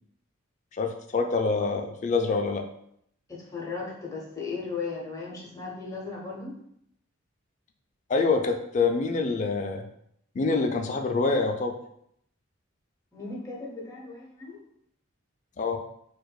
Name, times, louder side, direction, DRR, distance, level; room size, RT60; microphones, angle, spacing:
voice 1, 0.7-2.6 8.1-9.9 10.4-11.8 15.6-15.8, left 4 dB, 35° left, 5 dB, 0.3 m, -26 dB
voice 2, 3.3-6.6 13.1-14.6, left 4 dB, 15° left, -3 dB, 0.7 m, -36 dB
4.6 x 2.3 x 2.2 m, 0.71 s
head